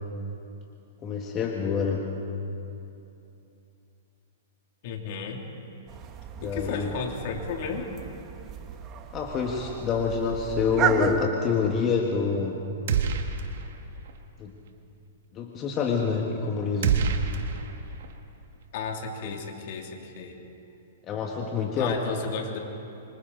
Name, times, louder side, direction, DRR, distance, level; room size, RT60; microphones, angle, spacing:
voice 1, 1.0-2.1 6.4-6.9 9.1-12.6 14.4-14.5 15.3-17.0 19.3-19.4 21.1-22.0, left 5 dB, 25° left, 0 dB, 1.8 m, -27 dB
voice 2, 4.8-5.4 6.4-7.9 18.7-20.4 21.7-22.6, left 5 dB, 55° left, 2 dB, 2.9 m, -34 dB
sound 1, 5.9-11.3, right 9 dB, 30° right, 1.2 m, -33 dB
sound 2, 12.9-13.8 14.0-14.2 16.8-18.1, right 6 dB, 65° right, 1.8 m, -27 dB
27.0 x 25.0 x 4.1 m, 2.8 s
hypercardioid pair, 145°, 0 cm